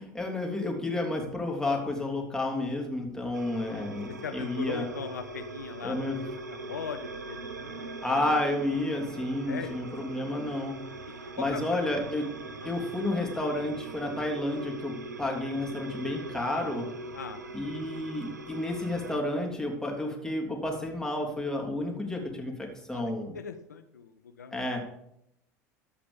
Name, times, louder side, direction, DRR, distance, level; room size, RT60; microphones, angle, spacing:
voice 1, 0.0-4.9 5.8-6.2 8.0-10.8 11.4-12.3 12.6-16.9 17.5-23.3 24.5-24.8, left 1 dB, 5° left, 0 dB, 3.1 m, -31 dB
sound 1, 3.3-19.2, right 2 dB, 90° right, 0.7 m, -41 dB
voice 2, 4.2-7.9 9.5-9.8 11.4-11.8 12.6-12.8 17.1-17.5 22.9-24.6, left 6 dB, 85° left, 9 dB, 0.6 m, -40 dB
14.0 x 5.1 x 5.3 m, 0.79 s
figure-of-eight pair, 75°, 9 cm